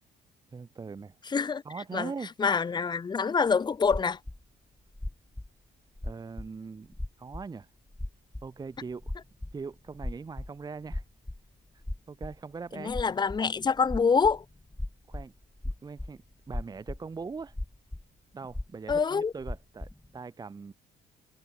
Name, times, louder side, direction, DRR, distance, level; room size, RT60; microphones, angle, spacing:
voice 1, 0.5-1.1 1.6-2.3 6.0-6.9 7.2-7.7 8.4-9.1 9.5-11.0 11.7-12.9 15.1-15.3 15.8-17.5 18.3-20.7, right 5 dB, 25° right, 1.4 m, -41 dB
voice 2, 1.3-1.6 1.9-2.1 2.4-4.2 12.7-14.4 18.9-19.3, left 5 dB, 25° left, 0.9 m, -26 dB
sound 1, 3.8-4.4 4.9-5.5 6.0-6.5 6.9-7.1 7.3-7.5 7.9-10.6 10.9-11.5 11.8-12.4 12.9-18.0 18.4-19.0 19.4-20.1, left 1 dB, 10° left, 2.7 m, -37 dB
cardioid pair, 110°, 17 cm